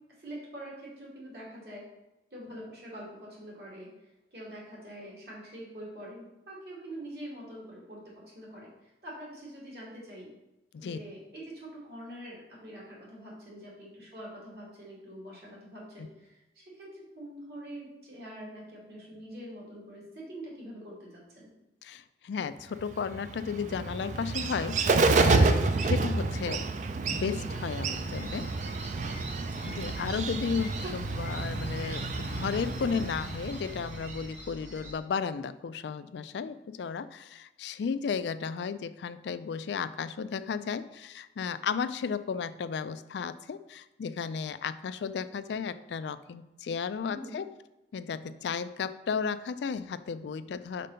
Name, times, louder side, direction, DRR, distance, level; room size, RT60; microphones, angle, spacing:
voice 1, 0.2-1.9 2.3-3.9 4.3-10.3 10.8-21.5 32.7-33.0 47.1-47.4, right 1 dB, 60° right, -5 dB, 2.4 m, -45 dB
voice 2, 21.8-26.7 27.1-28.5 29.6-47.5 47.9-50.9, left 6 dB, 75° left, 13 dB, 0.3 m, -34 dB
Bird, 22.8-34.3, right 3 dB, 40° right, 0.4 m, -29 dB
sound 1, 27.9-34.9, equal, 10° right, 1.0 m, -45 dB
5.2 x 4.1 x 5.6 m, 1.0 s
head